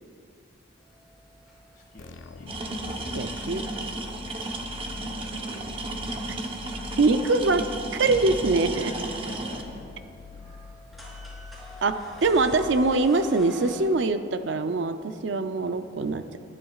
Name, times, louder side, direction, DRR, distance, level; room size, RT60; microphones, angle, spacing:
sound 1, 0.8-13.8, equal, ahead, 3.4 m, -47 dB
voice 1, 1.7-2.5 4.5-5.9 8.8-10.7, left 1 dB, 40° left, -1 dB, 2.0 m, -48 dB
sound 2, 2.0-13.4, left 4 dB, 65° left, 0.5 m, -44 dB
sound 3, 2.5-9.6, right 2 dB, 25° right, 0.9 m, -34 dB
voice 2, 3.1-3.7 6.3-6.4 7.0-8.9 11.8-16.4, right 3 dB, 65° right, 9 dB, 0.5 m, -24 dB
20.5 x 11.0 x 2.4 m, 2.3 s
head